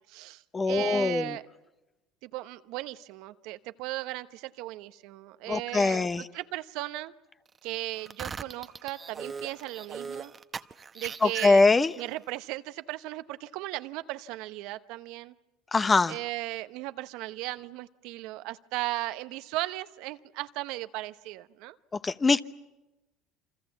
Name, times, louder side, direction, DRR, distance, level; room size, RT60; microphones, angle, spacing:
voice 1, 0.0-1.4 2.2-7.1 7.6-10.3 10.9-11.7 12.0-15.3 16.1-21.8, right 18 dB, 70° right, 12 dB, 0.9 m, -36 dB
voice 2, 0.5-1.4 5.5-6.2 11.2-11.9 15.7-16.2 22.0-22.4, left 3 dB, 25° left, 14 dB, 0.9 m, -23 dB
sound 1, 8.0-12.0, right 5 dB, 30° right, 0.9 m, -39 dB
28.5 x 25.5 x 7.3 m, 1.0 s
hypercardioid pair, 75°, 0 cm